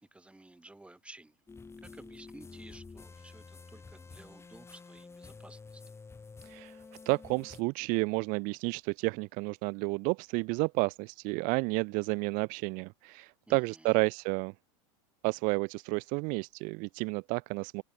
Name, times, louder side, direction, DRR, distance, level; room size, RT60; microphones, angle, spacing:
voice 1, 0.0-1.4 1.8-5.8 13.5-14.0, right 2 dB, 5° right, 7.1 m, -54 dB
sound 1, 1.5-7.6, left 4 dB, 15° left, 5.7 m, -50 dB
voice 2, 6.4-6.8 7.0-14.5 15.2-17.8, right 29 dB, 55° right, 0.9 m, -31 dB
supercardioid pair, 115°, 17 cm